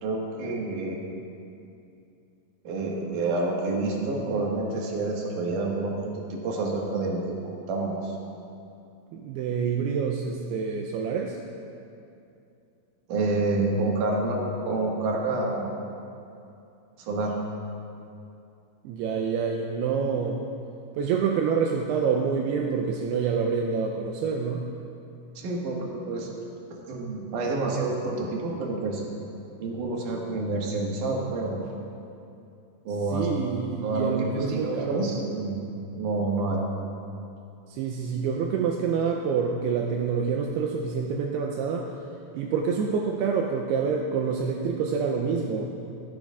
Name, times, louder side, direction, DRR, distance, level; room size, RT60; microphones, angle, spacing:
voice 1, 0.0-1.0 2.6-5.9 6.3-8.2 13.1-15.7 17.0-17.4 25.3-26.3 26.8-29.0 29.6-31.6 32.8-33.3 33.8-35.6 36.0-36.6, right 2 dB, 60° right, -2 dB, 2.5 m, -28 dB
voice 2, 9.1-11.4 18.8-20.4 21.0-24.6 33.1-35.1 37.7-41.9 42.3-45.7, right 6 dB, 85° right, 1 dB, 2.4 m, -27 dB
15.5 x 15.5 x 2.4 m, 2.6 s
omnidirectional pair, 5.2 m